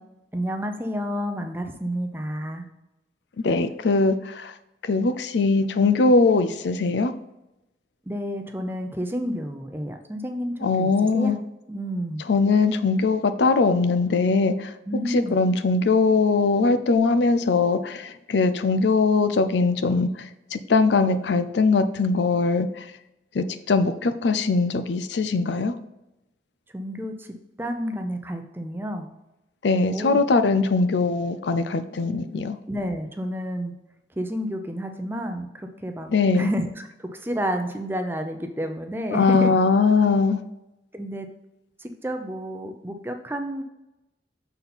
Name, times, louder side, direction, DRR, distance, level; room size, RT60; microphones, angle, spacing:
voice 1, 0.3-2.6 8.1-11.3 11.7-12.2 14.9-15.3 26.7-27.3 27.6-29.1 29.9-30.2 32.7-33.7 34.2-39.5 40.9-41.3 41.8-43.6, equal, 10° right, 5 dB, 0.6 m, -30 dB
voice 2, 3.4-4.5 4.8-7.1 10.6-11.4 12.3-14.7 15.1-22.7 23.3-25.7 29.6-32.6 36.1-36.5 39.1-40.4, left 4 dB, 75° left, 11 dB, 0.5 m, -21 dB
6.9 x 4.2 x 4.1 m, 0.94 s
head